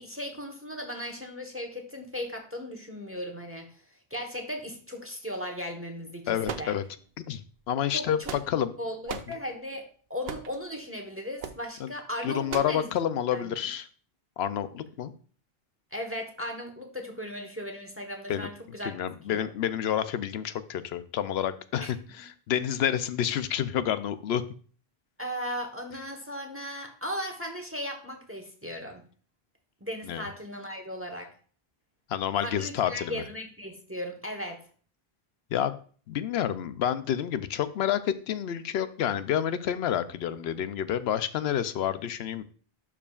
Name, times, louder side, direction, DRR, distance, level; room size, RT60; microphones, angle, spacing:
voice 1, 0.0-3.7 4.1-6.8 7.9-12.9 13.3-13.6 15.9-18.9 19.3-19.5 21.8-21.9 25.2-29.0 29.8-31.3 32.4-34.6, equal, 15° right, 3 dB, 1.1 m, -37 dB
voice 2, 6.3-6.8 7.3-7.4 7.7-8.7 11.8-11.9 12.2-13.9 14.4-15.1 18.3-18.5 18.8-24.4 30.1-30.3 32.1-33.2 35.5-35.8 36.1-42.4, left 10 dB, 85° left, 13 dB, 0.8 m, -29 dB
sound 1, 6.4-7.2 8.0-8.7 9.1-9.4 10.2-10.6 11.4-11.6 12.5-12.8, right 7 dB, 75° right, 0.9 m, -38 dB
12.0 x 4.9 x 2.4 m, 0.43 s
omnidirectional pair, 1.0 m